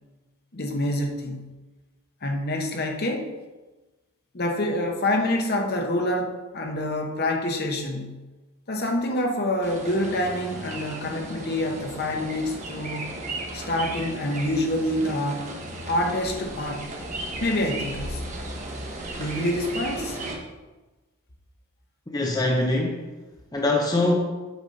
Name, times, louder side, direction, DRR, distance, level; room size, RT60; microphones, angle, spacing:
voice 1, 0.5-1.5 2.2-3.3 4.3-8.2 8.7-13.1 13.5-15.5 15.8-16.9 17.4-18.2 19.2-20.2, left 1 dB, 45° left, 3 dB, 0.9 m, -27 dB
sound 1, 9.6-20.4, right 2 dB, 35° right, 1.0 m, -35 dB
voice 2, 22.1-23.1 23.5-24.2, left 2 dB, 15° left, 0 dB, 0.6 m, -23 dB
8.1 x 4.1 x 5.2 m, 1.2 s
head